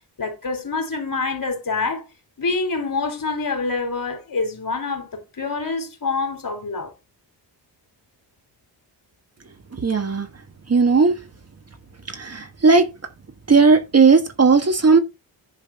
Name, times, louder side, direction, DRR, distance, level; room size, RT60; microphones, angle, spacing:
voice 1, 0.2-2.0 2.4-6.9, left 3 dB, 45° left, 3.5 m, -26 dB
voice 2, 9.8-10.3 10.7-11.1 12.1-12.8 13.5-15.0, right 4 dB, 35° right, 1.3 m, -16 dB
10.5 x 4.0 x 5.7 m
cardioid pair, 90°, 45 cm